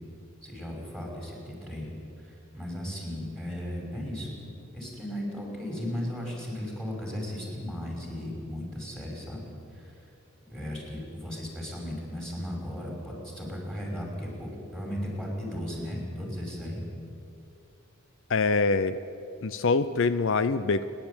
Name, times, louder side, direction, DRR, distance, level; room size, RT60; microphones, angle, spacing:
voice 1, 0.4-1.9 2.2-4.4 4.7-9.4 9.7-10.0 10.5-16.8, equal, ahead, -1 dB, 5.4 m, -36 dB
voice 2, 18.3-19.0 19.4-20.9, left 4 dB, 65° left, 13 dB, 0.6 m, -24 dB
29.0 x 11.0 x 8.7 m, 2.6 s
head